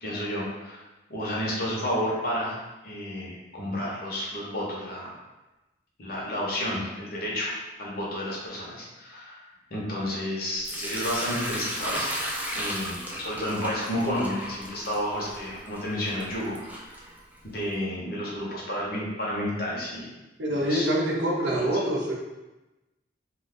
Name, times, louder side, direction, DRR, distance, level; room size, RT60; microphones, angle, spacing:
voice 1, 0.0-0.8 1.1-5.2 6.0-9.4 9.7-12.1 12.5-17.1 17.4-20.1 20.6-20.9 21.6-21.7, equal, 55° left, -5 dB, 0.9 m, -31 dB
Sink (filling or washing) / Liquid, 10.6-17.6, equal, 10° right, 0.4 m, -35 dB
voice 2, 20.4-22.1, right 1 dB, 75° right, -2 dB, 0.7 m, -25 dB
2.5 x 2.3 x 3.6 m, 1.1 s
head